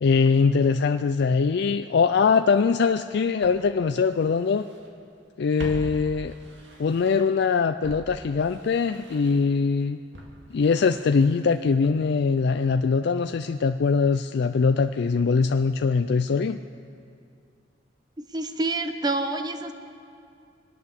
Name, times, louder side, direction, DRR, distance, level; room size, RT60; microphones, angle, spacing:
voice 1, 0.0-4.7 5.4-6.3 6.8-10.0 10.5-16.6, left 5 dB, 60° left, 8 dB, 0.4 m, -22 dB
Walk footsteps, 2.7-2.8 3.4-4.9 5.2-7.4 7.8-11.9 12.1-12.2, equal, 65° right, 2.2 m, -44 dB
voice 2, 18.2-19.7, right 2 dB, 20° right, 7 dB, 0.9 m, -28 dB
23.5 x 9.1 x 6.6 m, 2.4 s
head